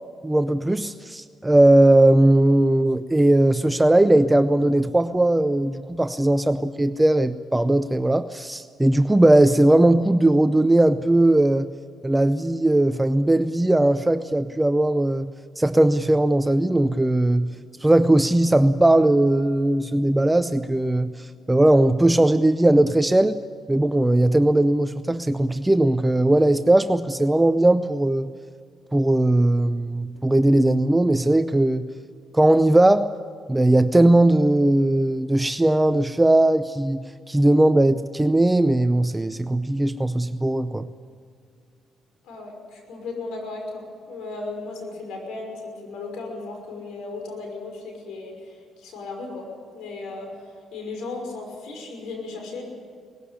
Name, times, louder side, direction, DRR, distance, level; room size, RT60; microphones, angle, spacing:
voice 1, 0.2-11.7 12.0-15.3 15.6-17.5 17.8-23.4 23.7-28.3 28.9-31.9 32.3-33.1 33.5-40.9, right 1 dB, 10° right, 11 dB, 0.6 m, -19 dB
voice 2, 42.2-49.5 49.7-52.6, left 3 dB, 90° left, 3 dB, 5.6 m, -36 dB
19.5 x 16.0 x 9.9 m, 2.1 s
cardioid pair, 90°, 0 cm